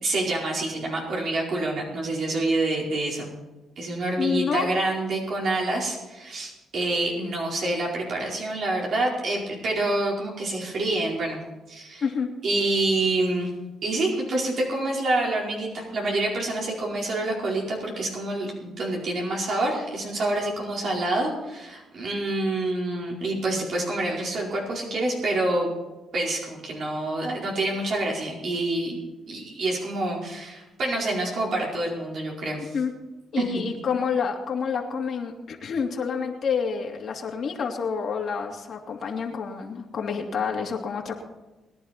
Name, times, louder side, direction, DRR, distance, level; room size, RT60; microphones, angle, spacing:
voice 1, 0.0-3.3 3.8-11.4 11.7-12.0 12.4-13.5 13.8-25.7 26.1-29.0 29.3-32.7 33.4-33.5, right 2 dB, 60° right, -3 dB, 4.6 m, -27 dB
voice 2, 4.2-4.7 12.0-12.3 32.6-32.9 33.3-41.2, left 6 dB, 55° left, 1 dB, 2.7 m, -28 dB
21.5 x 10.5 x 4.4 m, 1.1 s
cardioid pair, 90°, 0 cm